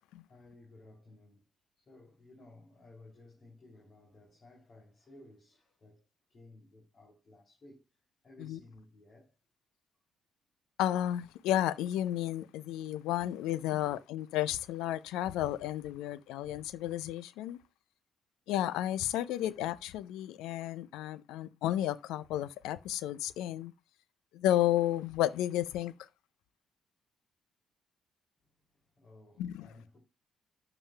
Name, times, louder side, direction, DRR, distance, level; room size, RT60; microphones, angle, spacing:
voice 1, 0.3-1.4 1.8-7.8 8.2-9.3 28.7-30.0, left 2 dB, 45° left, 2.9 m, -57 dB
voice 2, 10.8-17.6 18.5-23.7 24.3-26.1 29.4-29.7, left 13 dB, 70° left, 0.4 m, -32 dB
12.5 x 6.9 x 2.3 m
hypercardioid pair, 45°, 0 cm